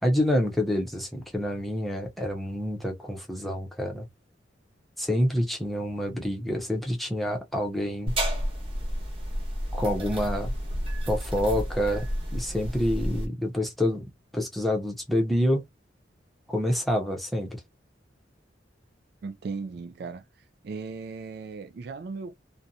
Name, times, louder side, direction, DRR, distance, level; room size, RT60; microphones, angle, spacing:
voice 1, 0.0-4.1 5.0-8.1 9.7-10.5 11.1-15.7 16.5-17.6, left 1 dB, ahead, 0.7 m, -27 dB
sound 1, 8.1-13.3, equal, 30° right, 1.0 m, -31 dB
voice 2, 19.2-20.2 20.6-22.4, right 4 dB, 60° right, 0.3 m, -37 dB
2.5 x 2.2 x 2.7 m
head